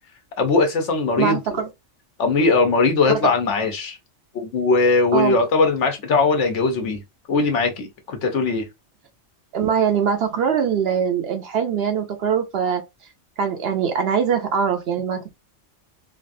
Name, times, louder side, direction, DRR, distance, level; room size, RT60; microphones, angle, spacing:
voice 1, 0.4-1.4 2.2-4.0 4.3-7.0 7.3-8.6, left 3 dB, 70° left, 1.1 m, -20 dB
voice 2, 1.2-1.7 3.1-3.2 5.1-5.4 9.5-12.8 13.4-15.3, right 7 dB, 65° right, 0.7 m, -22 dB
3.3 x 2.4 x 2.6 m
omnidirectional pair, 1.3 m